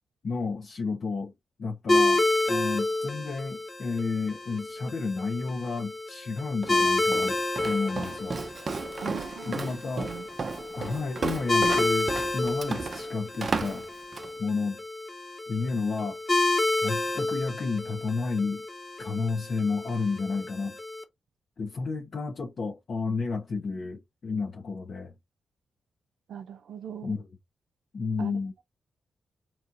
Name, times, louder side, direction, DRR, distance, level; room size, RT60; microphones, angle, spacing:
voice 1, 0.2-1.3 1.6-8.4 9.0-9.2 9.5-10.1 10.7-13.8 14.4-14.8 15.5-16.2 16.8-18.6 19.0-20.8 21.6-25.1 27.0-27.2 27.9-28.5, left 4 dB, 55° left, 0.9 m, -31 dB
sound 1, 1.9-21.0, left 2 dB, 30° left, 1.1 m, -30 dB
Walk footsteps, 6.6-14.4, right 4 dB, 45° right, 0.6 m, -34 dB
voice 2, 9.0-9.6 10.0-10.3 26.3-27.1 28.2-28.4, right 8 dB, 85° right, 0.7 m, -40 dB
4.3 x 3.1 x 3.9 m
cardioid pair, 100°, 0 cm